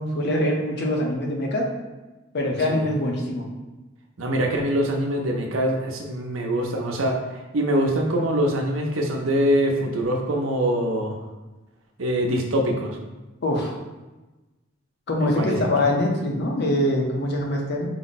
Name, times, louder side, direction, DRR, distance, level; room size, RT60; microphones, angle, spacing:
voice 1, 0.0-1.7 2.3-3.5 13.4-13.7 15.1-17.9, left 1 dB, 55° left, 0 dB, 0.7 m, -23 dB
voice 2, 4.2-7.2 7.5-11.2 12.0-13.0 15.2-15.7, equal, 80° right, 2 dB, 0.7 m, -24 dB
4.9 x 2.0 x 4.0 m, 1.1 s
head